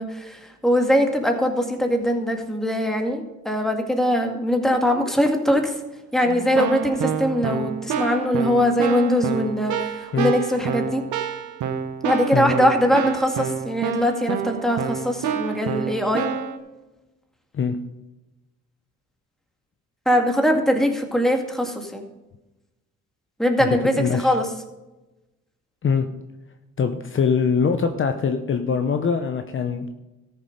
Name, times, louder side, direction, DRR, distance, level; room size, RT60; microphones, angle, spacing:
voice 1, 0.0-5.8 6.1-11.0 12.0-16.3 20.1-22.0 23.4-24.5, equal, ahead, 3 dB, 2.0 m, -21 dB
Keyboard (musical), 6.2-16.6, right 7 dB, 80° right, 1.2 m, -28 dB
voice 2, 23.6-24.4 25.8-26.1 26.8-29.9, left 6 dB, 40° left, 7 dB, 0.8 m, -23 dB
13.5 x 6.9 x 5.3 m, 1.0 s
cardioid pair, 90°, 30 cm